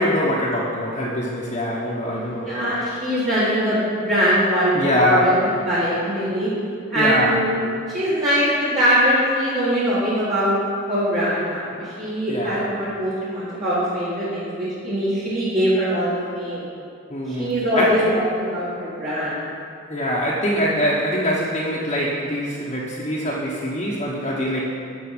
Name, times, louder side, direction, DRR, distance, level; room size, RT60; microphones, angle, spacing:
voice 1, 0.0-2.5 2.8-2.9 4.7-5.3 6.9-7.3 12.3-12.7 17.1-18.2 19.9-24.6, equal, 30° left, -6 dB, 1.1 m, -23 dB
voice 2, 2.1-4.8 5.1-6.5 6.9-10.6 10.9-16.7 17.3-18.0 18.3-19.4, equal, 35° right, -11 dB, 2.0 m, -22 dB
12.0 x 4.6 x 7.8 m, 2.4 s
head